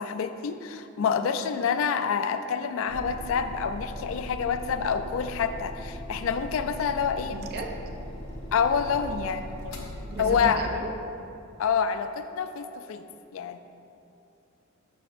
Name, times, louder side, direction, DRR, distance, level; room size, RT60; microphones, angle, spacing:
voice 1, 0.0-7.4 8.5-9.9 10.2-10.6 11.6-13.1 13.3-13.6, left 6 dB, 70° left, 9 dB, 0.3 m, -27 dB
sound 1, 2.9-10.9, equal, 90° left, 0.8 m, -39 dB
voice 2, 7.3-7.7 10.1-10.9, right 3 dB, 45° right, 2 dB, 0.5 m, -34 dB
6.7 x 6.1 x 2.5 m, 2.7 s
head